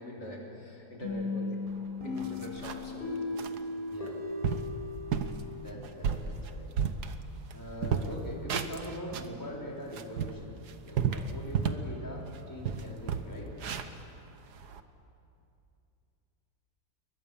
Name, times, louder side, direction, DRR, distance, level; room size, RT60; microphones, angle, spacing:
voice 1, 0.0-1.6 2.0-3.5, left 1 dB, 65° left, -1 dB, 3.7 m, -44 dB
sound 1, 1.0-5.7, left 3 dB, 30° left, 6.0 m, -36 dB
sound 2, 1.7-1.8 2.2-3.0 3.4-3.6 4.1-4.2 4.4-4.7 5.1-5.4 5.8-7.5 7.8-9.4 9.8-11.9 12.3-12.4 12.6-14.8, right 7 dB, 65° right, 1.6 m, -32 dB
voice 2, 3.9-4.2 5.4-6.7 7.5-10.5 10.8-13.5, equal, 10° left, -3 dB, 4.3 m, -42 dB
29.5 x 22.5 x 7.1 m, 2.7 s
omnidirectional pair, 1.9 m